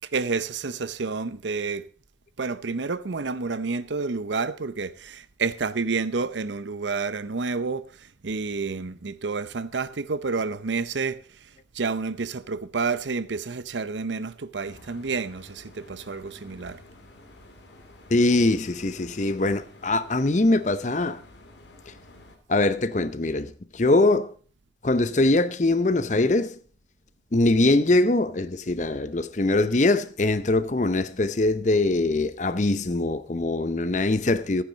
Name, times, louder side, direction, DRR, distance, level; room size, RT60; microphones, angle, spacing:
voice 1, 0.1-1.8 2.4-7.8 8.2-11.2 11.7-16.8, right 4 dB, 75° right, 0.7 m, -29 dB
sound 1, 14.6-22.4, left 1 dB, 70° left, 2.5 m, -50 dB
voice 2, 18.1-21.2 21.9-22.0 22.5-24.3 24.8-26.6 27.3-34.6, left 2 dB, 40° left, 0.7 m, -22 dB
14.0 x 9.6 x 4.0 m
head